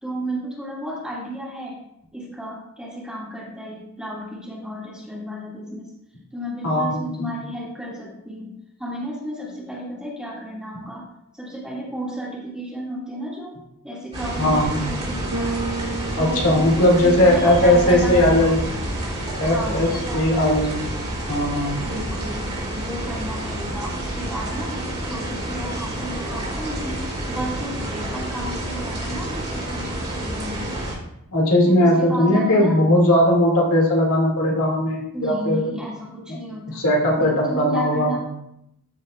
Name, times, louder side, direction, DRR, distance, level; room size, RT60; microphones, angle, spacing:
voice 1, 0.0-1.8 2.1-5.9 6.3-13.5 13.8-15.7 16.2-18.6 19.4-20.8 21.8-30.9 31.7-32.8 35.1-36.8 37.2-38.2, equal, 5° right, -5 dB, 2.4 m, -33 dB
voice 2, 6.6-7.3 14.4-14.8 16.2-18.6 19.4-20.8 21.3-21.9 31.3-35.7 36.7-38.2, left 1 dB, 70° left, -2 dB, 2.5 m, -18 dB
sound 1, 14.1-30.9, right 1 dB, 30° right, 3.5 m, -29 dB
Bass guitar, 15.3-17.7, right 3 dB, 75° right, 0.5 m, -32 dB
13.5 x 7.3 x 2.5 m, 0.79 s
head